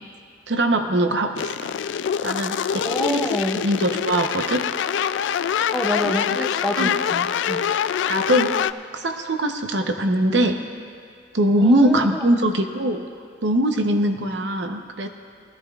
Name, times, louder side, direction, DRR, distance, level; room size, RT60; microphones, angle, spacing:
voice 1, 0.5-1.7 2.2-3.3 3.6-4.7 6.0-6.2 6.8-6.9 8.1-8.6 8.9-10.6 11.3-13.0 13.4-15.1, right 1 dB, 75° right, 6 dB, 0.8 m, -21 dB
sound 1, 1.4-8.7, left 8 dB, 85° left, 0.3 m, -25 dB
voice 2, 2.8-3.6 5.7-7.7 11.5-12.5, equal, ahead, 3 dB, 0.6 m, -28 dB
20.0 x 13.5 x 2.4 m, 2.2 s
head